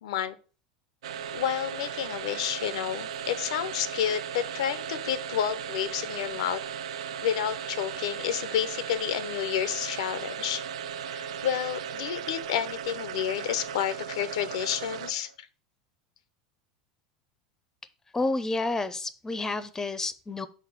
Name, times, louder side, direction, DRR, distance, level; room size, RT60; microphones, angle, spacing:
voice 1, 0.0-0.4 1.3-6.6 7.2-10.6 11.1-15.5, left 10 dB, 75° left, 15 dB, 0.6 m, -30 dB
sound 1, 1.0-15.3, right 8 dB, 75° right, 0.5 m, -37 dB
voice 2, 18.1-20.5, left 2 dB, 15° left, 15 dB, 0.6 m, -30 dB
5.5 x 4.1 x 6.0 m, 0.39 s
hypercardioid pair, 90°, 3 cm